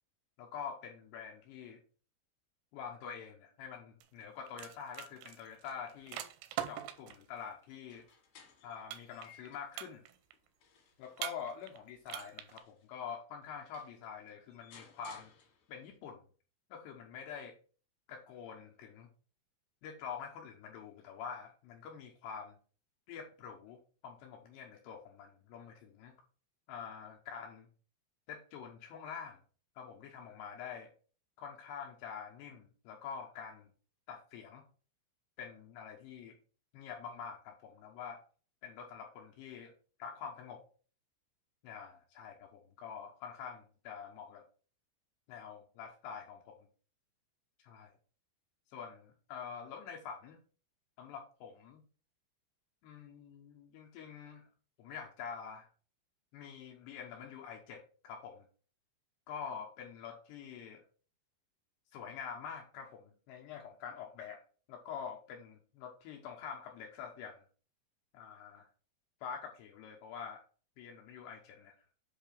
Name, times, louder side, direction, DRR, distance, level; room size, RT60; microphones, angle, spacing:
voice 1, 0.4-1.8 2.7-6.2 6.7-8.1 8.6-10.0 11.0-15.3 15.7-16.2 16.7-17.6 18.1-19.1 19.8-22.6 23.1-26.1 26.7-27.7 28.3-29.4 29.8-30.9 31.4-33.7 34.1-34.6 35.4-36.4 36.7-38.2 38.6-39.7 40.0-40.6 41.6-44.4 45.3-46.7 47.6-47.9 48.7-50.4 51.0-51.8 52.8-54.5 54.8-55.7 56.3-58.5 59.3-60.8 61.9-64.4 64.7-67.4 68.1-68.7 69.2-70.4 70.8-71.8, left 7 dB, 80° left, 1 dB, 2.6 m, -46 dB
sound 1, 4.0-7.2 8.9-9.5 9.7-10.3 11.2-11.8 12.1-12.6, right 12 dB, 85° right, 2.7 m, -42 dB
sound 2, 7.7-9.8 10.3-12.9 13.4-13.5 13.7-16.0, left 6 dB, 55° left, 3.1 m, -61 dB
8.0 x 2.7 x 5.4 m, 0.40 s
omnidirectional pair, 5.6 m